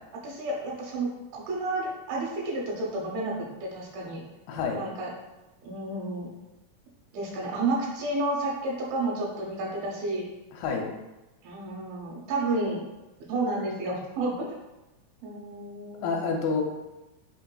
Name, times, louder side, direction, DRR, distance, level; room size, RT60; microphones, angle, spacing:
voice 1, 0.2-4.2 4.8-5.1 5.6-6.3 7.1-10.3 11.4-12.8 13.3-14.5 15.2-16.2, right 2 dB, 90° right, -2 dB, 2.7 m, -31 dB
voice 2, 4.5-4.8 10.5-10.9 16.0-16.6, left 5 dB, 85° left, 1 dB, 2.3 m, -28 dB
5.7 x 2.7 x 2.2 m, 1.0 s
omnidirectional pair, 4.1 m